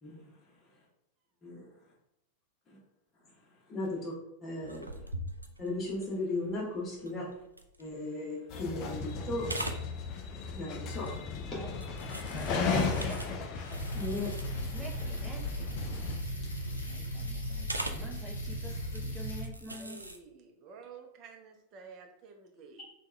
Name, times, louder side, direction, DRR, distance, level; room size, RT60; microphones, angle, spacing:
voice 1, 3.7-4.1 4.4-5.0 5.6-7.3 7.8-9.5 10.3-11.1 11.4-11.6 13.9-14.3 16.4-16.5, left 2 dB, 20° left, -4 dB, 1.0 m, -36 dB
sound 1, 4.6-8.3 8.7-9.1 9.4-9.9 11.0-11.3 11.8-14.7 15.1-15.2 15.5-15.7 16.0-16.7 17.7-18.1 18.8-19.0 19.4-20.2, right 1 dB, 85° right, 0.3 m, -42 dB
sound 2, 8.5-16.2, left 5 dB, 40° left, 0.5 m, -35 dB
voice 2, 12.2-13.2 14.1-15.5 16.8-20.0, right 1 dB, 10° right, -3 dB, 0.8 m, -46 dB
sound 3, 13.7-19.4, equal, 75° left, 0.7 m, -37 dB
voice 3, 19.8-22.8, right 5 dB, 40° right, 3 dB, 0.6 m, -51 dB
3.4 x 2.3 x 3.2 m, 0.81 s
figure-of-eight pair, 90°, 0 cm